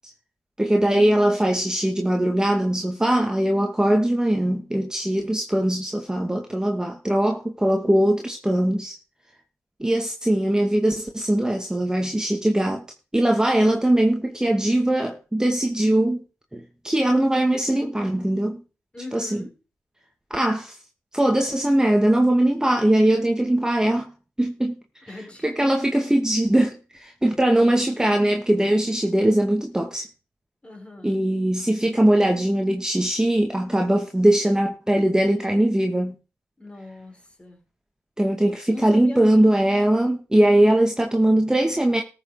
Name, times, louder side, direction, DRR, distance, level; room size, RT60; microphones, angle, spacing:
voice 1, 0.6-9.0 9.8-12.8 13.1-16.2 16.5-18.6 19.1-19.3 20.3-20.8 21.1-24.0 24.4-24.8 25.4-30.1 31.0-36.1 38.2-42.0, right 1 dB, 10° right, 2.4 m, -21 dB
voice 2, 18.9-19.5 25.1-25.5 30.6-31.2 36.6-37.6 38.7-39.5, left 2 dB, 20° left, 5.3 m, -40 dB
14.0 x 6.8 x 5.2 m
cardioid pair, 60°, 6 cm